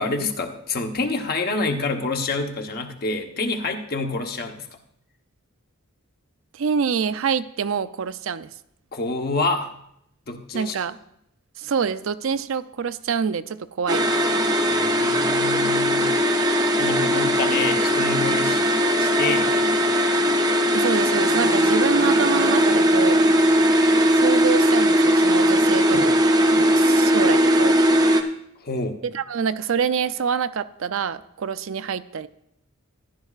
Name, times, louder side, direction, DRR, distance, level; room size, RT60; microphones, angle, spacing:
voice 1, 0.0-4.7 8.9-9.7 10.3-10.7 14.7-16.2 16.8-18.6 19.0-19.8 25.9-26.1 28.6-29.0, left 3 dB, 45° left, 4 dB, 1.0 m, -27 dB
voice 2, 6.5-8.5 10.5-11.0 11.6-14.1 20.7-23.2 24.1-26.2 26.5-27.7 29.1-32.3, right 6 dB, 70° right, 13 dB, 0.4 m, -26 dB
sound 1, 13.9-28.2, equal, 20° right, 0.7 m, -19 dB
15.0 x 11.0 x 2.4 m, 0.76 s
head